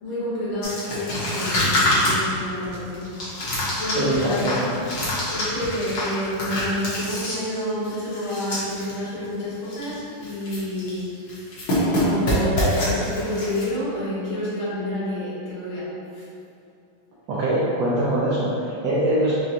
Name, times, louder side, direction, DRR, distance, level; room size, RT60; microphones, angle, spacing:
voice 1, 0.0-3.1 3.4-4.7 5.3-11.0 11.7-15.9 16.1-16.3, left 1 dB, 80° left, -10 dB, 2.0 m, -29 dB
sound 1, 0.6-8.9 9.2-9.3 9.6-10.0 10.2-11.0 11.3-13.6, left 1 dB, 55° left, 1.3 m, -26 dB
voice 2, 4.0-4.5 17.3-19.3, right 1 dB, 80° right, -7 dB, 0.9 m, -23 dB
4.8 x 2.3 x 2.8 m, 2.5 s
omnidirectional pair, 2.3 m